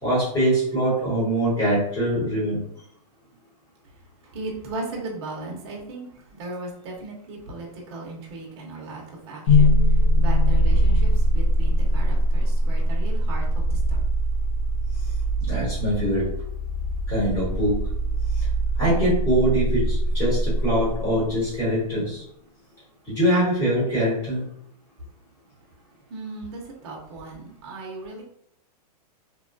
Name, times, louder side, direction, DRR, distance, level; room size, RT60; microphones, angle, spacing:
voice 1, 0.0-2.6 15.4-16.2 17.1-17.7 18.8-22.2 23.1-24.4, right 1 dB, 15° left, -8 dB, 1.1 m, -23 dB
voice 2, 4.2-14.0 26.1-28.2, right 2 dB, 40° right, -1 dB, 0.6 m, -37 dB
sound 1, 9.5-21.5, equal, 75° left, 0.8 m, -22 dB
2.9 x 2.2 x 2.5 m, 0.71 s
supercardioid pair, 175°, 21 cm